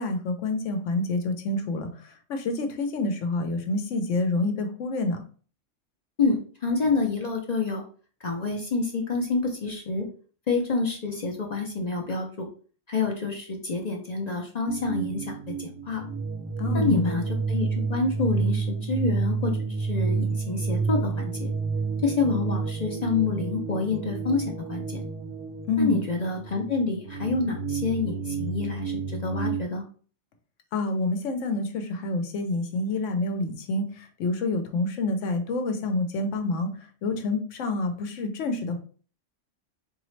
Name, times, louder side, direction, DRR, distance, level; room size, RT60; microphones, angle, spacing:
voice 1, 0.0-5.2 16.6-17.2 25.7-26.0 30.7-36.7 37.0-38.8, left 2 dB, 75° left, 6 dB, 1.0 m, -28 dB
voice 2, 6.2-7.8 8.2-10.1 10.5-12.5 12.9-16.1 16.7-21.5 22.0-25.0 25.8-29.8, left 4 dB, 45° left, 1 dB, 0.6 m, -28 dB
sound 1, 14.7-29.6, right 4 dB, 60° right, 0.9 m, -30 dB
3.9 x 2.7 x 3.1 m, 0.41 s
omnidirectional pair, 1.3 m